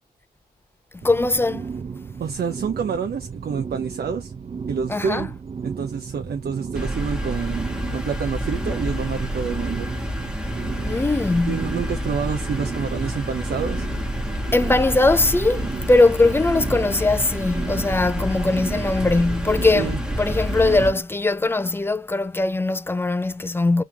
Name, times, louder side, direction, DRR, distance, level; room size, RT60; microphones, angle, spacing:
voice 1, 0.9-1.7 4.9-5.3 10.8-11.8 14.5-23.8, left 2 dB, 15° left, 0.4 m, -20 dB
sound 1, 1.0-21.0, right 6 dB, 40° right, 0.5 m, -34 dB
voice 2, 2.2-4.3 4.7-5.3 5.6-9.9 11.5-13.9 19.7-20.0, right 6 dB, 70° right, 0.7 m, -28 dB
sound 2, 6.8-20.9, equal, 5° right, 1.2 m, -28 dB
3.7 x 3.1 x 3.3 m
wide cardioid pair, 125°, 17 cm